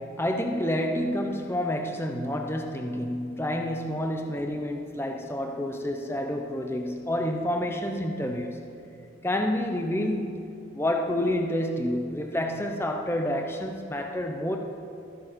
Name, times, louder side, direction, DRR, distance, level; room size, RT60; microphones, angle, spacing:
voice 1, 0.0-8.6 9.2-10.5 10.7-14.6, left 1 dB, 10° left, 3 dB, 0.7 m, -29 dB
22.5 x 7.6 x 5.1 m, 2.5 s
head